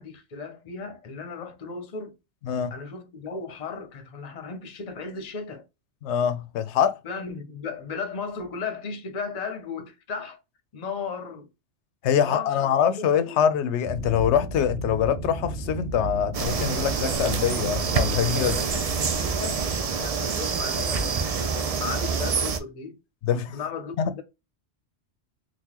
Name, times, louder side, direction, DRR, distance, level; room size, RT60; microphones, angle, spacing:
voice 1, 0.0-2.2 2.7-5.6 7.0-10.4 10.7-11.5 12.2-13.4 18.4-23.0 23.5-24.2, left 5 dB, 40° left, 0.7 m, -36 dB
voice 2, 6.0-7.0 12.0-18.6 23.2-23.6 24.0-24.1, left 8 dB, 85° left, 0.9 m, -24 dB
sound 1, 13.8-20.2, right 2 dB, 80° right, 1.0 m, -34 dB
sound 2, 16.3-22.6, right 5 dB, 50° right, 0.5 m, -27 dB
3.9 x 2.4 x 2.8 m
omnidirectional pair, 1.1 m